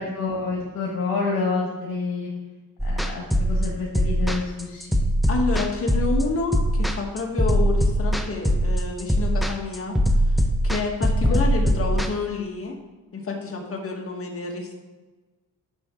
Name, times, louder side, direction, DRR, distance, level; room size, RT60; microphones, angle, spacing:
voice 1, 0.0-2.3 2.8-5.0 11.2-11.6, left 4 dB, 75° left, -3 dB, 1.9 m, -28 dB
sound 1, 2.8-12.1, equal, ahead, 0.7 m, -21 dB
voice 2, 5.3-10.0 10.3-12.8 13.1-14.7, left 4 dB, 40° left, 2 dB, 1.7 m, -29 dB
9.6 x 6.3 x 3.8 m, 1.2 s
cardioid pair, 95°, 35 cm